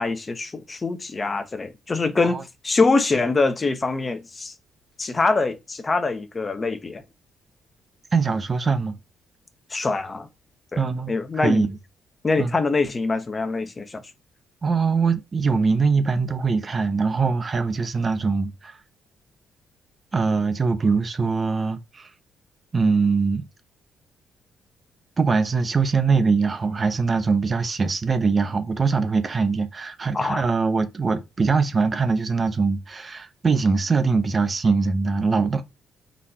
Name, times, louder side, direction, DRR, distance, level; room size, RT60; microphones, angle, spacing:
voice 1, 0.0-4.5 5.0-7.0 9.7-10.3 10.7-10.8 11.1-11.7 12.2-14.0 30.1-30.4, left 3 dB, 30° left, 0.7 m, -24 dB
voice 2, 8.1-9.0 10.8-11.1 11.4-11.8 12.4-12.5 14.6-18.8 20.1-22.1 22.7-23.4 25.2-35.6, right 4 dB, 35° right, 0.6 m, -22 dB
4.0 x 2.5 x 4.2 m
cardioid pair, 90°, 0 cm